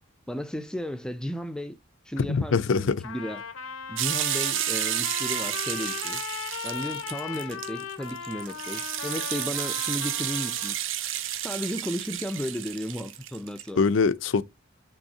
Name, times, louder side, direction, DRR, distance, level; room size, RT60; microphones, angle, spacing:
voice 1, 0.3-1.8 2.1-3.4 3.9-6.2 6.6-10.8 11.4-13.8, equal, 5° left, 0.4 m, -34 dB
voice 2, 2.2-3.0 13.8-14.4, left 4 dB, 65° left, 0.4 m, -23 dB
Trumpet, 3.0-10.8, left 7 dB, 90° left, 0.8 m, -37 dB
sound 1, 4.0-13.7, right 12 dB, 65° right, 0.6 m, -31 dB
6.2 x 3.1 x 2.6 m
head